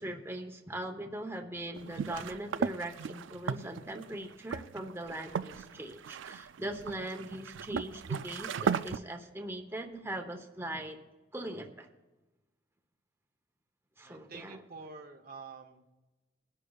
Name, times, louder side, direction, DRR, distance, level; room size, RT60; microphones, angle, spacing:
voice 1, 0.0-11.0 11.3-11.9 14.0-14.6, right 1 dB, 15° right, 3 dB, 0.9 m, -40 dB
sound 1, 1.8-9.0, right 6 dB, 90° right, 0.4 m, -36 dB
voice 2, 14.0-15.9, right 4 dB, 50° right, 4 dB, 0.9 m, -48 dB
22.0 x 11.0 x 2.4 m, 1.1 s
head